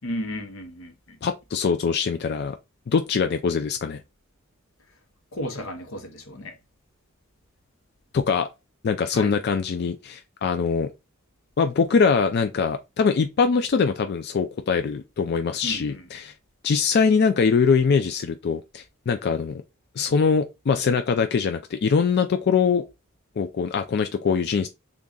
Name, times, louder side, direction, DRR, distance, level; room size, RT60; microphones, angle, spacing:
voice 1, 0.0-1.2 5.3-6.6 9.1-9.4 15.6-16.1, left 1 dB, 90° left, 0.9 m, -34 dB
voice 2, 1.2-2.5 2.9-4.0 8.1-8.5 8.8-10.9 11.6-16.3 16.6-19.6 20.0-22.8 23.4-24.7, left 5 dB, 55° left, 0.4 m, -23 dB
3.8 x 2.3 x 3.8 m
head